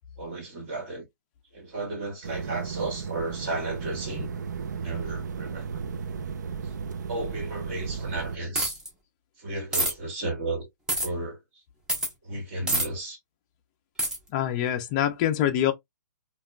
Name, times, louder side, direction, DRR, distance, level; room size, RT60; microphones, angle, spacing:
voice 1, 0.2-1.1 1.5-4.3 4.7-5.8 6.6-8.8 9.4-10.7 11.0-11.6 12.2-13.2, right 2 dB, 40° right, 2.0 m, -34 dB
sound 1, 2.2-8.4, right 6 dB, 70° right, 0.4 m, -34 dB
sound 2, 8.5-8.9 9.7-9.9 10.9-11.1 11.9-12.1 12.7-12.9 14.0-14.2, right 1 dB, 5° right, 0.7 m, -26 dB
voice 2, 14.3-15.7, left 11 dB, 25° left, 0.4 m, -25 dB
3.4 x 2.3 x 2.2 m
hypercardioid pair, 155°, 10 cm